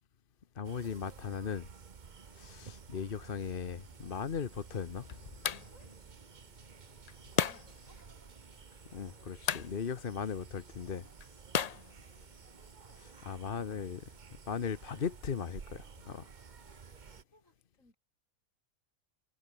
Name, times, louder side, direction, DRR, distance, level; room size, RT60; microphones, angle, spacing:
voice 1, 0.6-1.7 2.4-5.1 8.9-11.1 13.2-14.0 14.5-16.3, left 6 dB, 40° left, 1.0 m, -38 dB
sound 1, 0.6-17.2, right 6 dB, 35° right, 1.0 m, -53 dB
sound 2, 4.2-12.7, left 7 dB, 80° left, 0.3 m, -39 dB
voice 2, 7.3-8.0 11.6-12.0 12.9-13.0 17.0-18.0, left 1 dB, 60° left, 8.3 m, -64 dB
omnidirectional pair, 1.5 m